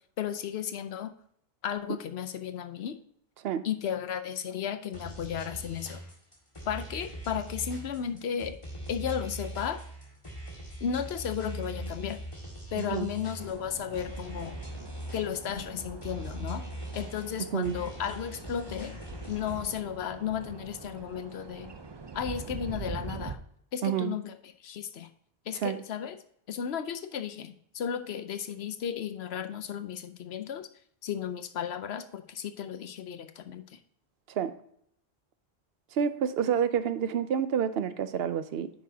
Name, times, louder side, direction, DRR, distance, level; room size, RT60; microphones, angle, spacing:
voice 1, 0.2-1.1 1.6-3.0 3.6-6.0 6.7-8.6 8.9-9.8 10.8-12.2 12.7-14.6 15.1-16.7 16.9-19.0 19.3-21.7 22.1-23.4 23.7-24.3 24.6-25.1 25.5-26.1 26.5-30.7 31.0-33.6, left 8 dB, 85° left, 9 dB, 0.9 m, -34 dB
sound 1, 4.9-19.7, right 1 dB, 30° left, 2.2 m, -41 dB
voice 2, 12.8-13.1 17.5-17.8 23.8-24.2 25.5-25.8 34.3-34.6 35.9-38.7, right 8 dB, 75° right, 12 dB, 0.8 m, -29 dB
sound 2, 13.4-23.3, right 5 dB, 35° right, 0.5 m, -44 dB
9.2 x 6.1 x 2.8 m, 0.68 s
omnidirectional pair, 1.0 m